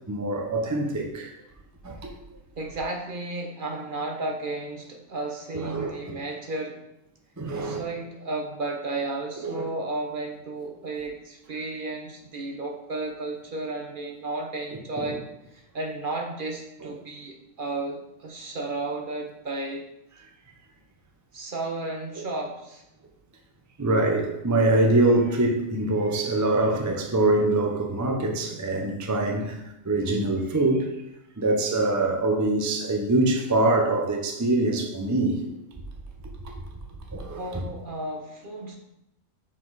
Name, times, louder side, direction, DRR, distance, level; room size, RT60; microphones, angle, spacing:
voice 1, 0.1-1.3 1.8-2.1 5.5-6.2 7.4-7.8 9.4-9.7 14.9-15.1 16.8-16.9 22.2-22.3 23.8-31.0 31.4-35.5 36.4-36.6 37.1-37.7, right 2 dB, 20° right, 2 dB, 0.4 m, -24 dB
voice 2, 2.6-6.8 7.5-15.2 15.5-19.8 21.3-22.8 37.3-38.8, right 2 dB, 45° right, 2 dB, 0.8 m, -33 dB
5.8 x 4.9 x 4.0 m, 0.86 s
omnidirectional pair, 1.4 m